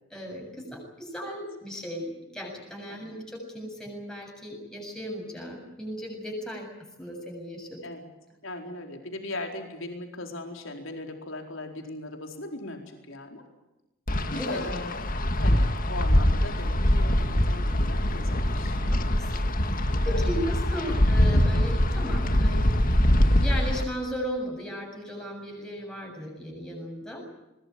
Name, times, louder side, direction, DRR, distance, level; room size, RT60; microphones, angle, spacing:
voice 1, 0.1-6.7 7.0-7.8 14.3-14.6 18.9-19.5 19.7-22.7 23.4-27.3, equal, 5° left, -1 dB, 7.2 m, -36 dB
voice 2, 8.4-13.4 14.4-15.0 15.4-18.8 20.0-20.6 20.9-21.0, left 2 dB, 70° left, 3 dB, 4.4 m, -39 dB
Wind, 14.1-23.8, left 1 dB, 40° left, 2.0 m, -23 dB
21.5 x 21.5 x 8.9 m, 0.98 s
head